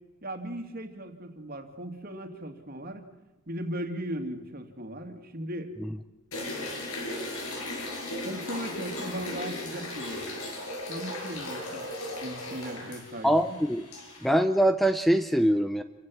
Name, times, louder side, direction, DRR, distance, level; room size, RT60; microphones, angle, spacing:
voice 1, 0.2-3.0 3.5-5.7 8.2-10.3 10.9-11.9 12.2-13.6, right 1 dB, 45° right, 6 dB, 2.7 m, -37 dB
sound 1, 6.3-14.3, left 1 dB, 85° left, 7.6 m, -37 dB
voice 2, 13.2-13.9 14.2-15.8, equal, ahead, 9 dB, 0.6 m, -23 dB
28.0 x 15.5 x 7.9 m, 1.1 s
head